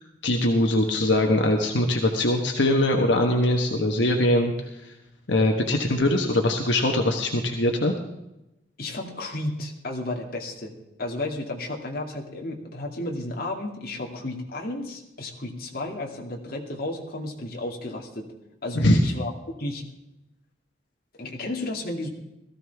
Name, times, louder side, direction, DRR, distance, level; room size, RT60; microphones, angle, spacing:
voice 1, 0.2-4.5 5.3-7.9 18.7-19.0, left 1 dB, 85° left, 3 dB, 1.3 m, -22 dB
voice 2, 8.8-18.3 18.6-19.3 19.6-19.8 21.2-22.1, left 2 dB, 55° left, 0 dB, 2.3 m, -33 dB
18.0 x 14.5 x 3.5 m, 0.91 s
head